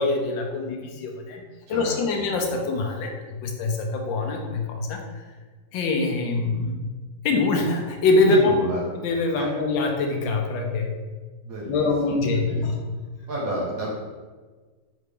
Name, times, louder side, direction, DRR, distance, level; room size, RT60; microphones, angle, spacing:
voice 1, 0.0-1.4 1.7-3.1 3.4-5.0 5.7-6.8 7.2-8.5 9.0-10.9 11.7-12.8, left 3 dB, 85° left, 2 dB, 1.3 m, -24 dB
voice 2, 1.7-2.0 8.3-8.9 9.3-9.5 11.4-12.7 13.3-13.9, right 1 dB, 60° right, -4 dB, 1.1 m, -31 dB
4.0 x 3.3 x 3.3 m, 1.4 s
omnidirectional pair, 2.0 m